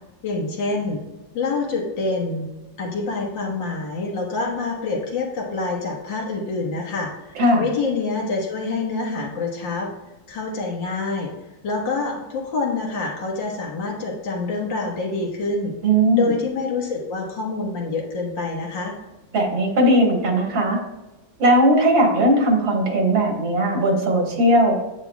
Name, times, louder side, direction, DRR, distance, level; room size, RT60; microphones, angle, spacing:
voice 1, 0.2-1.0 1.3-2.5 2.8-9.9 10.3-11.3 11.6-15.8 16.1-19.0, left 3 dB, 70° left, -1 dB, 2.1 m, -26 dB
voice 2, 15.8-16.3 19.3-20.8 21.4-24.8, right 1 dB, 80° right, 0 dB, 2.4 m, -18 dB
9.5 x 8.4 x 2.3 m, 1.1 s
omnidirectional pair, 2.1 m